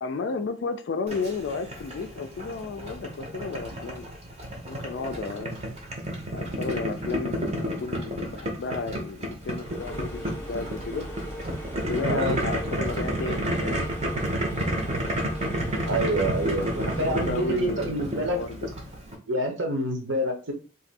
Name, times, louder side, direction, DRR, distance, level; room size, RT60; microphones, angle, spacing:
voice 1, 0.0-4.1 4.6-5.6 6.3-11.0 11.9-13.9 16.8-18.6, left 4 dB, 55° left, 8 dB, 0.3 m, -33 dB
Boiling, 1.1-19.2, right 1 dB, 30° right, 0.6 m, -31 dB
sound 1, 9.4-17.5, equal, 10° left, 0.6 m, -38 dB
voice 2, 12.1-12.4 15.9-18.4 19.3-20.5, right 1 dB, 60° right, 3 dB, 0.8 m, -27 dB
2.6 x 2.5 x 4.0 m, 0.36 s
head